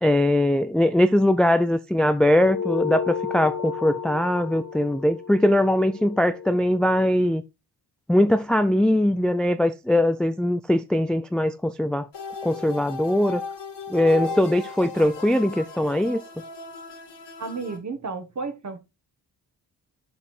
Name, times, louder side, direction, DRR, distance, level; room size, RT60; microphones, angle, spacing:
voice 1, 0.0-7.4 8.1-12.1 12.4-13.4 13.9-16.2, left 1 dB, ahead, 0.3 m, -21 dB
sound 1, 2.4-7.2, left 6 dB, 45° left, 0.6 m, -33 dB
sound 2, 12.1-17.8, left 4 dB, 90° left, 2.2 m, -36 dB
voice 2, 17.4-18.8, right 4 dB, 45° right, 1.6 m, -32 dB
6.8 x 5.2 x 4.3 m
wide cardioid pair, 105°, 40 cm